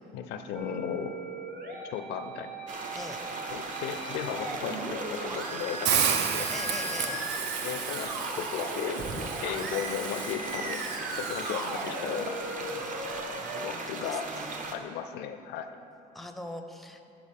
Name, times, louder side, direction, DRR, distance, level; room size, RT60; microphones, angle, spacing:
voice 1, 0.1-1.2 1.8-2.5 3.5-6.0 6.3-6.5 7.6-9.0 9.4-10.8 11.2-12.4 13.5-14.3 14.7-15.7, left 8 dB, 85° left, 9 dB, 0.5 m, -35 dB
sound 1, 0.5-13.6, right 1 dB, 65° right, 1.1 m, -38 dB
sound 2, 2.7-14.7, right 3 dB, 50° right, 0.8 m, -38 dB
Hiss, 5.8-11.9, right 7 dB, 80° right, 0.6 m, -33 dB
voice 2, 6.5-7.2 12.7-14.8 16.1-17.0, left 1 dB, ahead, 6 dB, 0.5 m, -42 dB
10.5 x 4.8 x 3.7 m, 2.7 s
cardioid pair, 110°, 17 cm